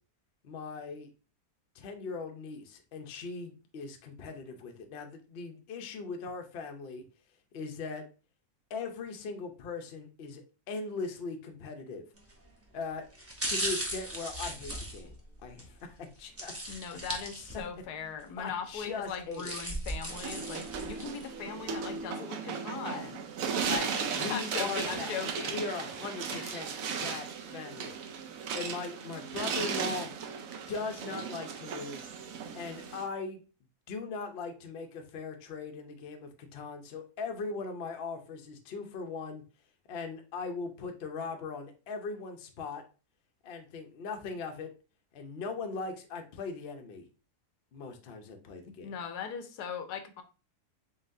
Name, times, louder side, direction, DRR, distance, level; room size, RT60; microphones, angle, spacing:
voice 1, 0.4-1.1 1.7-7.0 7.5-8.0 8.7-12.0 12.7-13.0 13.5-15.2 15.4-16.5 18.4-19.5 24.2-25.2 25.5-26.7 27.0-27.3 27.5-28.0 28.5-30.1 30.7-32.1 32.5-33.4 33.9-39.4 39.9-42.8 43.4-44.7 45.1-47.0 47.7-48.9, left 4 dB, 55° left, 0.7 m, -39 dB
sound 1, 12.2-12.5 13.1-15.7 16.4-17.8 18.2-18.3 19.1-21.3 21.7-21.8, right 1 dB, 15° right, 0.5 m, -37 dB
voice 2, 16.7-23.2 23.6-25.6 26.3-26.5 48.6-50.2, left 7 dB, 80° left, 1.2 m, -39 dB
sound 2, 20.1-33.1, right 6 dB, 65° right, 1.0 m, -36 dB
4.0 x 3.9 x 2.5 m
omnidirectional pair, 1.7 m